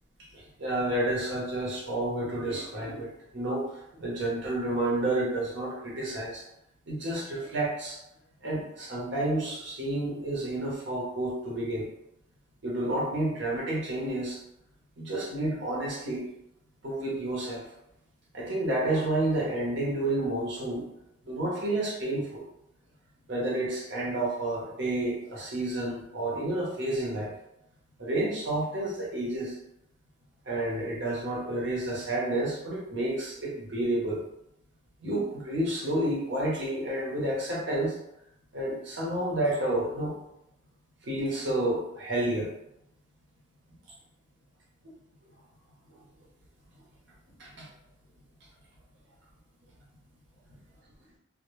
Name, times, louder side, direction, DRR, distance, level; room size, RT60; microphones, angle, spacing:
voice 1, 0.3-3.7 3.9-6.4 6.9-8.0 8.4-11.9 12.6-14.4 15.0-16.2 16.8-17.6 18.3-20.8 21.2-22.4 23.3-27.3 28.0-29.5 30.5-34.2 35.0-38.0 38.5-40.2 41.0-42.5 47.4-47.7, right 1 dB, 65° right, -4 dB, 0.8 m, -30 dB
2.1 x 2.1 x 3.0 m, 0.82 s
head